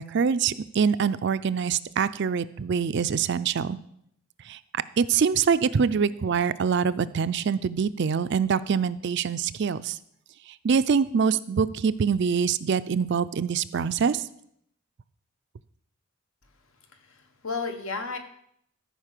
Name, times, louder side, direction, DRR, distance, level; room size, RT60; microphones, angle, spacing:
voice 1, 0.0-3.8 4.5-10.0 10.6-14.3, right 6 dB, 50° right, 15 dB, 0.4 m, -25 dB
voice 2, 16.9-18.2, left 4 dB, 65° left, 6 dB, 1.3 m, -33 dB
13.5 x 5.2 x 6.6 m, 0.71 s
head